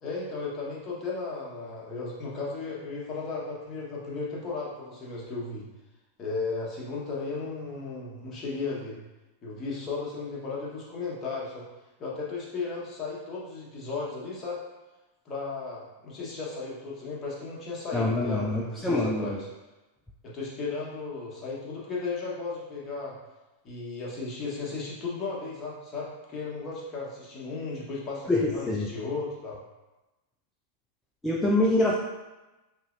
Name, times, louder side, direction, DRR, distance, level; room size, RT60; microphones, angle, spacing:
voice 1, 0.0-5.7 6.2-9.0 9.4-11.6 12.0-14.6 15.2-19.5 20.2-23.2 23.6-29.6, left 4 dB, 25° left, -5 dB, 1.2 m, -35 dB
voice 2, 17.9-19.4 28.3-28.9 31.2-32.0, left 2 dB, 10° left, -2 dB, 0.4 m, -25 dB
5.3 x 3.0 x 2.5 m, 1.1 s
figure-of-eight pair, 90°, 0 cm